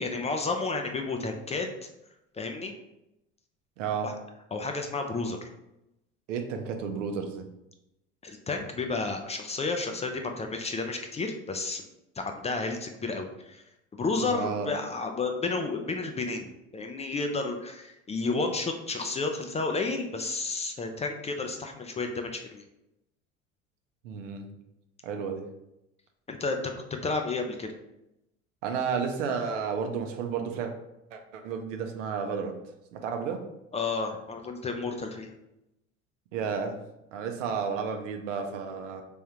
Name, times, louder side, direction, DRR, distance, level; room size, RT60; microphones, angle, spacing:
voice 1, 0.0-1.7 2.3-2.7 4.0-4.1 4.5-5.4 8.2-11.8 12.2-13.6 13.9-22.6 26.3-27.7 33.7-35.3, left 3 dB, 20° left, 4 dB, 0.4 m, -31 dB
voice 2, 3.8-4.1 6.3-7.5 14.2-14.7 24.0-24.5 25.0-25.4 28.6-30.7 31.1-32.5 32.9-33.4 36.3-36.8 37.1-39.0, right 6 dB, 80° right, 4 dB, 0.7 m, -32 dB
3.5 x 3.5 x 2.9 m, 0.88 s
hypercardioid pair, 70°, 37 cm